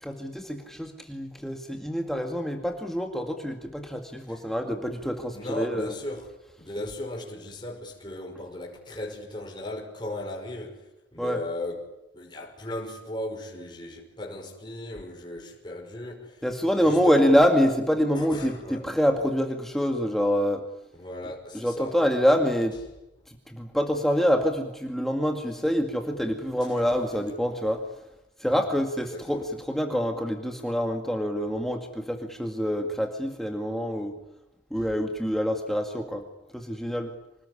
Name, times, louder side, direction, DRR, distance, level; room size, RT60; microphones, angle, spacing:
voice 1, 0.0-5.9 11.2-11.4 16.4-20.6 21.5-22.7 23.3-27.8 28.4-34.1 34.7-36.2 36.5-37.1, equal, ahead, 2.1 m, -26 dB
voice 2, 5.3-10.8 11.1-11.9 12.1-16.4 16.8-17.4 18.1-18.9 20.9-22.0 28.5-28.6 29.1-29.5 34.7-34.9, left 1 dB, 25° left, 5.6 m, -37 dB
26.0 x 19.5 x 9.9 m
head